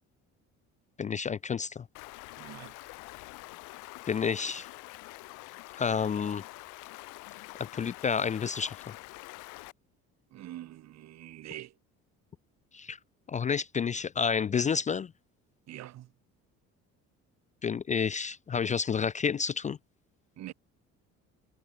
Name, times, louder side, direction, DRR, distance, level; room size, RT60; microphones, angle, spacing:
voice 1, 1.0-1.8 4.1-4.7 5.8-6.4 7.6-8.9 12.7-13.0 13.3-15.1 17.6-19.8, left 6 dB, 25° left, 0.4 m, -30 dB
Stream, 1.9-9.7, left 24 dB, 90° left, 1.7 m, -46 dB
voice 2, 2.4-2.8 10.3-11.8 15.7-16.1 20.4-20.5, right 13 dB, 60° right, 1.8 m, -44 dB
cardioid pair, 110°, 30 cm